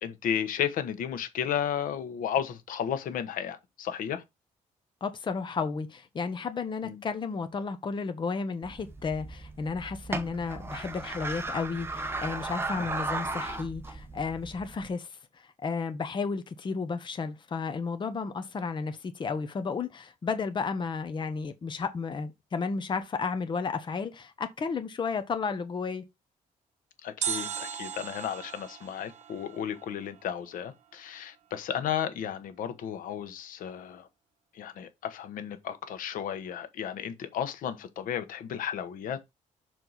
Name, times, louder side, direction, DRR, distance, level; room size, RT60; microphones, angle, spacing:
voice 1, 0.0-4.2 6.8-7.0 12.8-12.9 27.0-34.1 34.5-39.2, left 9 dB, 85° left, 1.1 m, -33 dB
voice 2, 5.0-26.0, left 5 dB, 35° left, 0.9 m, -33 dB
sound 1, 8.6-14.9, right 2 dB, 15° right, 0.9 m, -36 dB
sound 2, 27.2-30.3 30.5-30.6, right 8 dB, 60° right, 1.1 m, -37 dB
6.5 x 4.5 x 4.1 m
cardioid pair, 120°, 14 cm